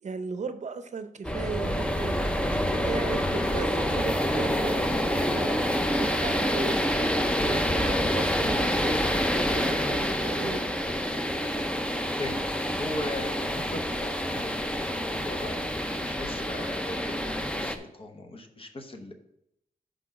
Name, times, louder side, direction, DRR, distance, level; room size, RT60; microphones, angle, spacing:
voice 1, 0.0-2.3 2.8-5.6 6.0-9.0 9.5-10.6, right 5 dB, 55° right, 10 dB, 0.6 m, -37 dB
sound 1, 1.2-17.8, equal, 5° left, 0.6 m, -27 dB
voice 2, 2.1-2.6 10.3-10.7 11.9-19.1, left 1 dB, 40° left, 4 dB, 0.9 m, -39 dB
6.1 x 5.2 x 6.0 m, 0.81 s
wide cardioid pair, 120°, 15 cm